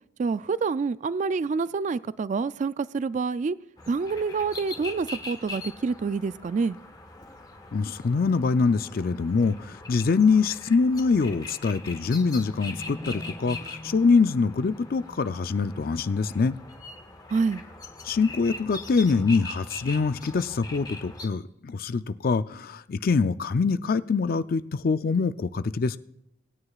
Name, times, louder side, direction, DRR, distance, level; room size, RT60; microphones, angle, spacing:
voice 1, 0.2-3.6 3.9-6.8 17.3-17.6, right 4 dB, 40° right, 16 dB, 0.3 m, -27 dB
sound 1, 3.8-21.3, left 2 dB, 20° left, 1.3 m, -41 dB
voice 2, 7.7-13.6 13.8-16.5 18.0-26.0, left 4 dB, 50° left, 13 dB, 0.4 m, -24 dB
23.0 x 9.7 x 2.4 m, 0.80 s
head